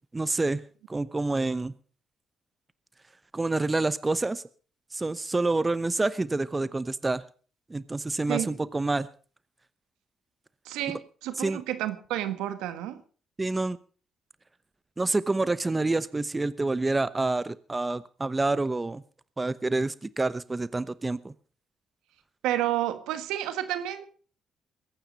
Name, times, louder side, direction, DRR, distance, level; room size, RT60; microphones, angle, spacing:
voice 1, 0.1-0.6 0.9-1.7 3.3-4.4 4.9-7.2 7.7-9.1 11.4-11.6 13.4-13.8 15.0-19.0 19.4-21.3, right 2 dB, 25° right, 16 dB, 0.9 m, -27 dB
voice 2, 10.6-13.0 22.4-24.1, right 13 dB, 85° right, 11 dB, 1.5 m, -30 dB
21.5 x 9.2 x 5.4 m, 0.41 s
supercardioid pair, 60°, 0 cm